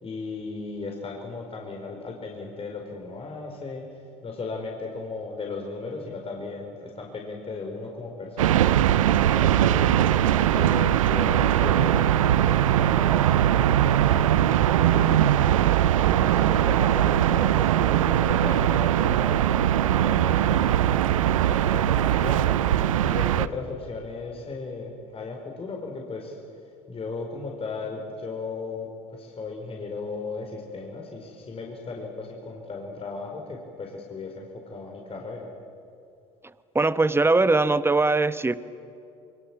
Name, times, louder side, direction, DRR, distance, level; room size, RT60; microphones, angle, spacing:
voice 1, 0.0-3.8 4.2-15.4 16.1-26.4 26.6-35.5, left 3 dB, 35° left, 1 dB, 4.9 m, -36 dB
sound 1, 8.4-23.5, right 11 dB, 85° right, 0.7 m, -21 dB
voice 2, 36.7-38.5, right 3 dB, 15° right, 14 dB, 1.2 m, -21 dB
27.0 x 24.0 x 7.4 m, 2.6 s
hypercardioid pair, 60°, 17 cm